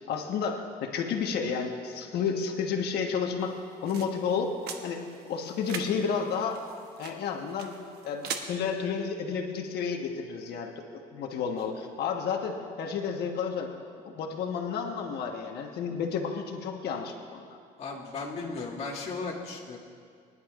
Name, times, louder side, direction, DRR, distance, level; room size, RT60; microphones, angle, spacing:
voice 1, 0.1-3.5 3.8-4.5 4.8-6.6 7.0-7.8 8.0-10.7 11.1-13.7 14.0-17.5, left 6 dB, 75° left, 2 dB, 1.3 m, -31 dB
sound 1, 3.4-8.4, right 6 dB, 70° right, 1.1 m, -42 dB
voice 2, 17.8-19.8, left 3 dB, 40° left, -6 dB, 2.3 m, -36 dB
22.0 x 11.0 x 2.5 m, 2.3 s
cardioid pair, 110°, 17 cm